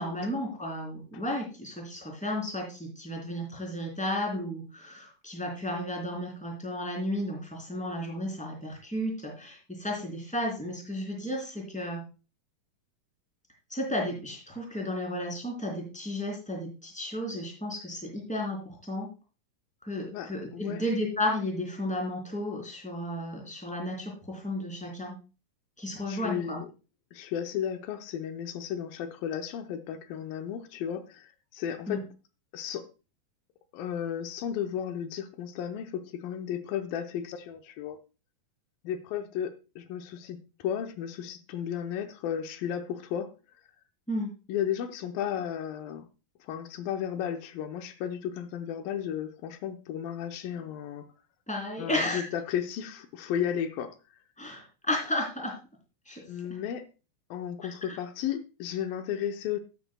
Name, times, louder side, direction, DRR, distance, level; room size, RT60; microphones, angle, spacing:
voice 1, 0.0-12.0 13.7-19.1 19.8-25.1 25.8-26.6 31.9-32.0 44.1-44.3 51.5-52.3 54.4-55.6 56.0-56.2, left 1 dB, ahead, 3.0 m, -33 dB
voice 2, 20.1-20.8 26.1-26.7 27.1-32.1 32.5-32.9 33.7-38.0 38.8-43.3 44.5-46.1 46.4-51.1 51.8-54.0 56.3-56.9 57.3-59.6, left 9 dB, 90° left, 2.5 m, -34 dB
12.5 x 9.2 x 2.2 m
omnidirectional pair, 4.0 m